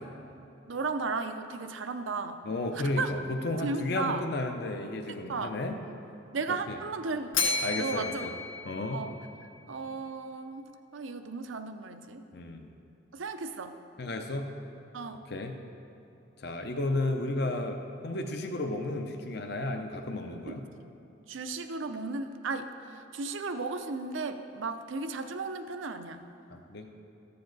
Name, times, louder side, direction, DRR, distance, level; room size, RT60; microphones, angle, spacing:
voice 1, 0.7-2.4 2.7-3.1 3.5-4.3 5.3-5.5 6.3-8.3 8.9-9.1 9.7-12.2 13.1-13.8 14.9-15.2 20.5-20.9 21.3-26.3, right 4 dB, 75° right, 8 dB, 0.6 m, -35 dB
voice 2, 2.5-5.8 6.7-6.8 7.6-8.3 8.7-9.0 12.3-12.7 14.0-14.6 15.3-15.5 16.4-20.6 26.5-26.9, left 2 dB, 55° left, 4 dB, 0.6 m, -33 dB
Bell, 7.3-9.6, left 4 dB, 80° left, 1.0 m, -32 dB
14.0 x 6.9 x 4.0 m, 2.9 s
head